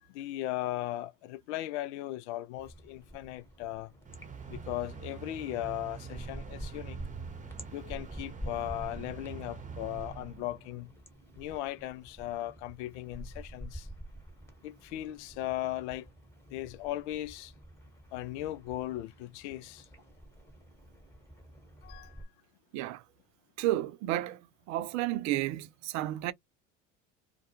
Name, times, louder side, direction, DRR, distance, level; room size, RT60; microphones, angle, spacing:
voice 1, 0.0-3.9 4.5-7.0 7.7-10.9 11.3-13.9 14.6-16.1 16.5-17.5 18.1-19.9 21.8-22.3, left 14 dB, 70° left, 0.5 m, -37 dB
sound 1, 2.5-22.2, equal, 5° left, 1.1 m, -49 dB
sound 2, 4.0-10.9, right 6 dB, 20° right, 0.8 m, -45 dB
voice 2, 23.6-24.4 24.7-26.3, right 14 dB, 50° right, 0.5 m, -31 dB
2.3 x 2.2 x 2.8 m
hypercardioid pair, 75°, 36 cm